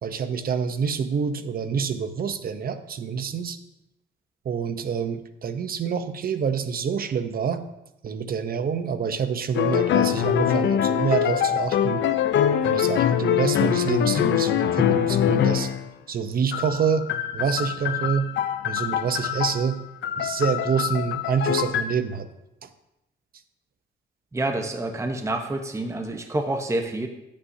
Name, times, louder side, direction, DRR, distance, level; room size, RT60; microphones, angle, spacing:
voice 1, 0.0-3.6 4.4-7.6 8.0-12.0 12.6-15.7 16.1-17.1 17.3-18.3 18.6-19.8 20.2-22.3 22.6-22.7, right 6 dB, 50° right, 10 dB, 0.8 m, -27 dB
sound 1, 9.5-15.9 16.5-21.8, left 10 dB, 65° left, 0.6 m, -23 dB
voice 2, 24.3-27.1, right 2 dB, 15° right, 4 dB, 0.9 m, -28 dB
11.0 x 8.6 x 2.7 m, 0.90 s
cardioid pair, 90°, 20 cm